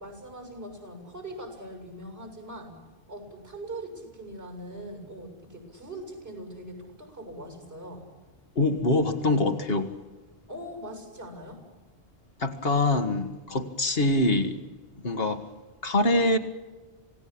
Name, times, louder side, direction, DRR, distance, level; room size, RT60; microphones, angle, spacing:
voice 1, 0.0-2.8 3.1-8.0 10.5-11.6, right 1 dB, 65° right, 5 dB, 7.6 m, -41 dB
voice 2, 8.6-9.9 12.4-14.6 15.0-15.4 15.8-16.4, left 2 dB, 60° left, 7 dB, 1.8 m, -24 dB
27.0 x 18.0 x 8.7 m, 1.3 s
omnidirectional pair, 1.1 m